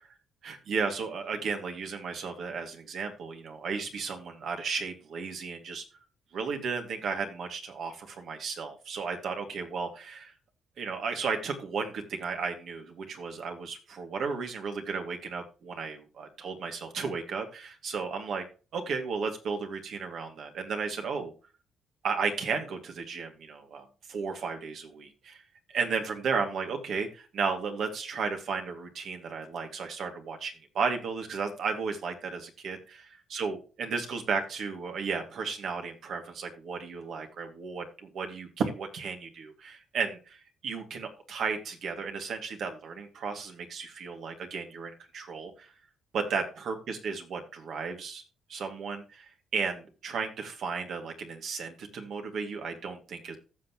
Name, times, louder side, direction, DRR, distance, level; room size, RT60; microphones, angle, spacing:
voice 1, 0.4-5.8 6.3-10.3 10.8-18.4 18.7-21.3 22.0-25.4 25.7-32.8 33.3-45.7 46.1-48.2 48.5-53.4, right 5 dB, 65° right, 4 dB, 2.3 m, -34 dB
14.5 x 6.1 x 3.0 m, 0.33 s
cardioid pair, 90°, 0 cm